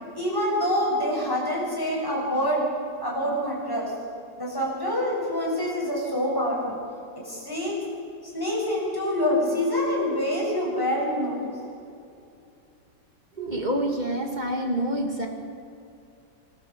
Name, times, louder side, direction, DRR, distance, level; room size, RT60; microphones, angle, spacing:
voice 1, 0.1-2.7 3.0-3.9 4.4-6.8 7.2-7.8 8.3-11.5, equal, 10° left, -4 dB, 7.0 m, -26 dB
voice 2, 13.4-15.3, right 1 dB, 25° right, 3 dB, 2.6 m, -27 dB
26.0 x 13.0 x 8.5 m, 2.6 s
omnidirectional pair, 1.9 m